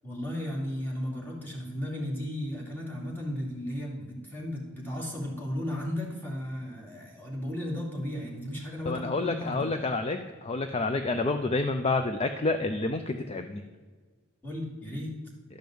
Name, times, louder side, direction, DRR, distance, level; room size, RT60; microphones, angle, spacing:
voice 1, 0.0-9.7 14.4-15.2, left 1 dB, 10° left, -3 dB, 2.5 m, -35 dB
voice 2, 8.9-13.6, left 3 dB, 30° left, 7 dB, 0.5 m, -29 dB
12.0 x 5.3 x 7.8 m, 1.5 s
head